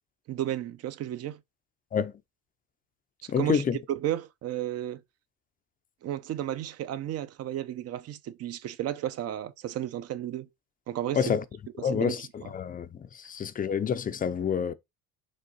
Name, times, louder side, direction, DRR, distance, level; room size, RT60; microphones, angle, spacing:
voice 1, 0.3-1.4 3.2-5.0 6.0-10.5 10.9-11.3 11.8-12.2 12.4-12.5, right 12 dB, 45° right, 0.8 m, -33 dB
voice 2, 3.3-3.8 11.1-11.4 11.8-14.7, left 7 dB, 25° left, 0.7 m, -28 dB
5.5 x 3.6 x 5.4 m
supercardioid pair, 120°, 35 cm